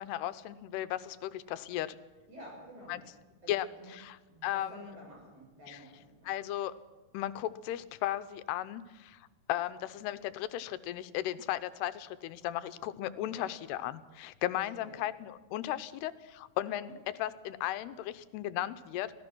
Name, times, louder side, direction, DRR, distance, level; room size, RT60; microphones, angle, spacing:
voice 1, 0.0-2.0 2.9-3.0 3.5-4.9 5.7-5.8 6.2-6.7 7.1-16.9 17.2-19.1, left 13 dB, 85° left, 13 dB, 2.8 m, -36 dB
voice 2, 2.3-3.0 3.4-3.9 4.3-6.3 13.3-13.5 14.8-15.0 16.8-16.9, right 1 dB, 45° right, -2 dB, 8.2 m, -51 dB
25.5 x 17.5 x 6.2 m, 1.3 s
omnidirectional pair, 4.7 m